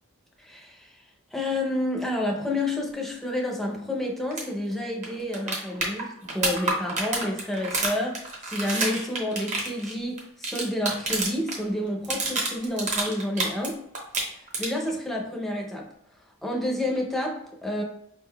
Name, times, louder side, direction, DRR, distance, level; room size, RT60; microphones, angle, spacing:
voice 1, 0.4-1.0 1.3-13.8 14.3-15.9 16.4-17.8, left 1 dB, ahead, -1 dB, 0.6 m, -29 dB
beer can destroy, 4.3-4.4 4.7-4.8 5.0-11.6 11.9-13.7 13.9-14.9 17.0-17.1, right 2 dB, 35° right, 0.9 m, -28 dB
4.7 x 3.7 x 2.2 m, 0.72 s
head